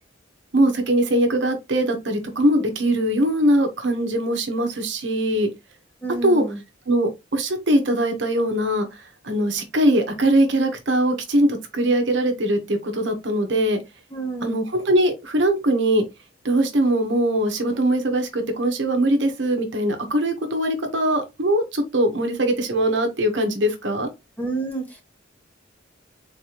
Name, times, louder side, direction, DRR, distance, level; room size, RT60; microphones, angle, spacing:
voice 1, 0.5-5.5 6.2-6.4 6.9-13.8 14.4-16.0 16.4-24.1, right 1 dB, 70° right, 1.0 m, -21 dB
voice 2, 6.0-6.6 14.1-14.6 24.4-25.0, right 3 dB, 10° left, 1.2 m, -29 dB
4.0 x 3.3 x 2.9 m
head